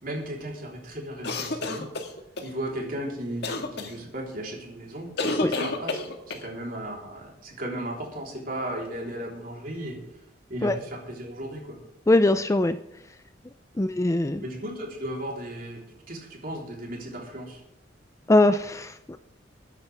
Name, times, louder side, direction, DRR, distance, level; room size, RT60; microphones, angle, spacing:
voice 1, 0.0-1.9 2.4-10.0 10.5-11.8 13.8-13.9 14.4-17.6, right 1 dB, 50° right, -1 dB, 3.8 m, -35 dB
sound 1, 1.2-2.5 3.4-3.9 5.2-6.5, left 3 dB, 60° left, 1.7 m, -29 dB
voice 2, 12.1-12.8 13.8-14.4 18.3-19.2, left 2 dB, 15° left, 11 dB, 0.4 m, -21 dB
21.5 x 10.0 x 3.5 m, 0.82 s
head